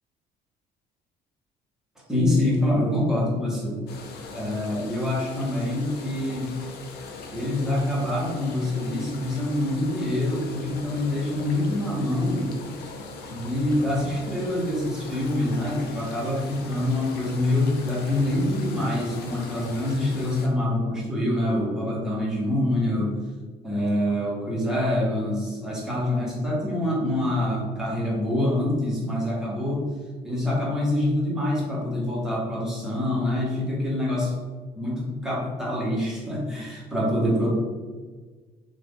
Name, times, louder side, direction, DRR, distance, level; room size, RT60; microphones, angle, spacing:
voice 1, 2.1-3.8 4.3-6.5 7.3-12.5 13.3-23.2 23.6-29.9 30.2-34.5 34.7-37.5, left 1 dB, 5° right, -6 dB, 1.2 m, -25 dB
sound 1, 3.9-20.5, left 3 dB, 75° left, 0.5 m, -40 dB
2.7 x 2.5 x 3.6 m, 1.4 s
cardioid pair, 110°, 17 cm